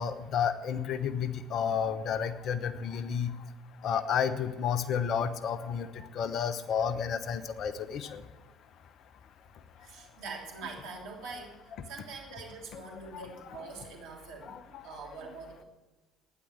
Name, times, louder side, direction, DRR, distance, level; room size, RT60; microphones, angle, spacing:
voice 1, 0.0-3.3 3.8-5.9 6.1-8.2 13.1-13.2 14.5-14.6, left 7 dB, 50° left, 11 dB, 1.0 m, -31 dB
voice 2, 9.8-11.6 11.8-15.6, right 4 dB, 65° right, -1 dB, 3.0 m, -44 dB
12.5 x 10.0 x 7.9 m, 1.2 s
figure-of-eight pair, 55°, 0 cm